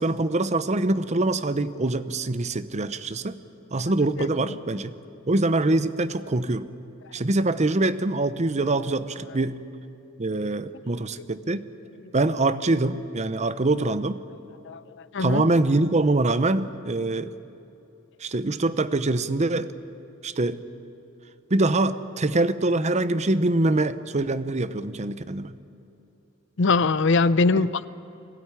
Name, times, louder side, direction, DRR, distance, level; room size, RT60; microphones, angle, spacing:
voice 1, 0.0-3.4 3.7-4.9 5.3-6.7 7.1-9.5 10.2-11.7 12.1-14.2 15.2-17.3 18.2-19.7 20.2-20.6 21.5-25.5 27.6-27.7, right 2 dB, 35° right, 0.8 m, -24 dB
voice 2, 14.7-15.4 26.6-27.9, left 3 dB, 65° left, 0.6 m, -22 dB
22.5 x 17.0 x 9.9 m
head